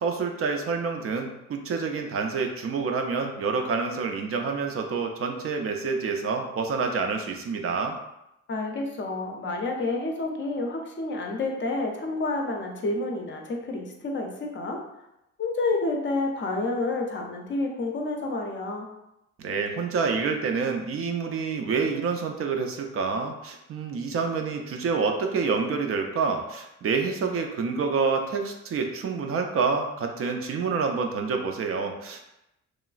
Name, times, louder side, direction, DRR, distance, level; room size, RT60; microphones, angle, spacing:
voice 1, 0.0-8.0 19.4-32.2, right 5 dB, 50° right, 3 dB, 0.4 m, -28 dB
voice 2, 8.5-14.8 15.4-18.9, left 2 dB, 40° left, 1 dB, 0.5 m, -29 dB
3.0 x 2.2 x 2.4 m, 0.87 s
cardioid pair, 90°, 30 cm